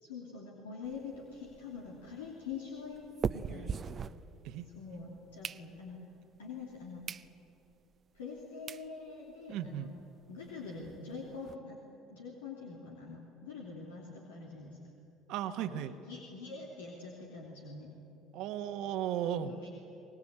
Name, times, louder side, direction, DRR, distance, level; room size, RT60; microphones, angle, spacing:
voice 1, 0.0-3.0 3.3-3.8 4.7-6.0 6.4-7.1 8.1-9.9 10.3-11.8 12.1-14.8 15.5-17.9 19.4-19.7, left 4 dB, 90° left, -2 dB, 2.9 m, -45 dB
sound 1, 0.8-4.8 5.2-6.1 6.6-6.7 7.0-7.3 7.7-7.8 8.4-8.5 8.7-8.9 9.3-9.4 9.6-9.7 10.0-10.1 10.4-11.5, right 6 dB, 40° right, 0.7 m, -41 dB
voice 2, 9.5-9.9 15.3-15.9 18.3-19.5, right 10 dB, 65° right, 9 dB, 1.3 m, -35 dB
24.0 x 19.5 x 8.9 m, 2.8 s
hypercardioid pair, 65°, 0 cm